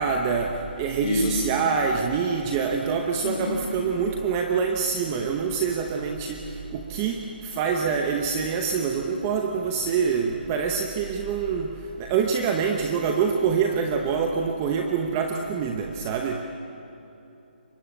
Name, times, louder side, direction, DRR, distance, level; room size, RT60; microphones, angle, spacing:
voice 1, 0.0-6.4 6.7-11.7 12.0-16.4, right 6 dB, 15° right, 3 dB, 0.8 m, -25 dB
voice 2, 1.0-1.4 3.2-3.6, left 2 dB, 30° left, -1 dB, 5.8 m, -27 dB
27.5 x 23.5 x 9.0 m, 2.9 s
hypercardioid pair, 175°, 6 cm